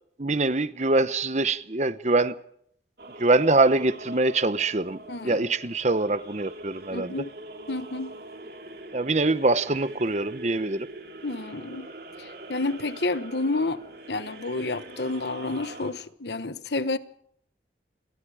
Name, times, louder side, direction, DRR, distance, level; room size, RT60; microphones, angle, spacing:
voice 1, 0.2-2.4 3.2-7.1 8.9-10.9, right 2 dB, 40° right, 1.0 m, -24 dB
sound 1, 3.0-15.9, right 2 dB, 60° right, 3.5 m, -43 dB
voice 2, 5.1-5.4 6.9-7.3 7.7-8.1 11.2-11.9 12.2-13.8 14.1-17.0, left 2 dB, 75° left, 1.2 m, -30 dB
29.0 x 23.5 x 4.9 m
head